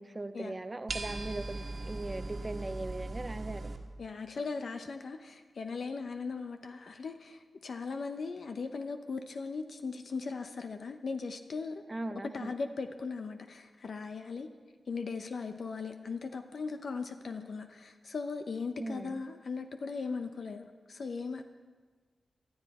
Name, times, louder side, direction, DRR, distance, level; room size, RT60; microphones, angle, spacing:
voice 1, 0.0-3.7 11.9-12.5 18.8-19.2, right 2 dB, 25° right, 10 dB, 0.7 m, -39 dB
sound 1, 0.9-3.8, right 2 dB, 55° right, 1.6 m, -39 dB
voice 2, 4.0-11.8 12.3-14.5 14.9-21.4, left 4 dB, 65° left, 7 dB, 0.7 m, -38 dB
19.0 x 12.0 x 4.2 m, 1.5 s
wide cardioid pair, 85°, 0 cm